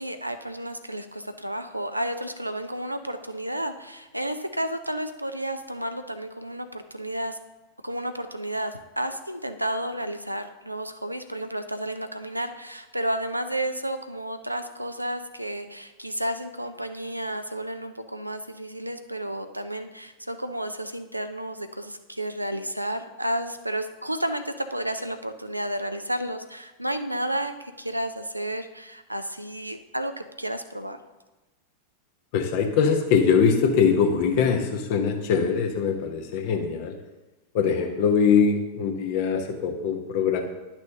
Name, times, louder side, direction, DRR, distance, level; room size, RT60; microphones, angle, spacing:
voice 1, 0.0-7.4 7.8-30.1 30.4-31.0, right 1 dB, 85° right, 8 dB, 0.4 m, -31 dB
voice 2, 32.3-37.0 37.5-40.4, left 6 dB, 50° left, 4 dB, 1.0 m, -22 dB
10.5 x 6.1 x 2.8 m, 1.1 s
figure-of-eight pair, 90°, 0 cm